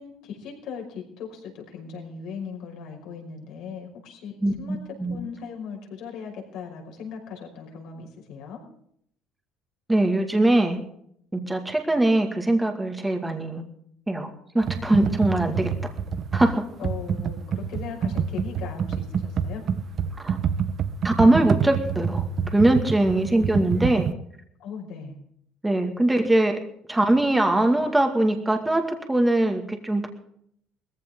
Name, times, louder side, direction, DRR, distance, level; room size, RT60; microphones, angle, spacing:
voice 1, 0.0-4.8 5.1-8.6 16.8-19.6 23.1-23.2 24.6-25.2, left 6 dB, 70° left, 2 dB, 5.6 m, -38 dB
voice 2, 4.4-5.2 9.9-10.8 11.3-13.6 14.1-14.3 14.5-15.7 16.3-16.6 20.2-20.4 21.0-22.2 22.5-24.1 25.6-26.6 26.9-30.1, right 1 dB, 10° right, 4 dB, 2.1 m, -22 dB
Computer keyboard, 14.6-24.1, right 7 dB, 45° right, 1.0 m, -27 dB
20.0 x 15.0 x 3.8 m, 0.67 s
cardioid pair, 125°, 0 cm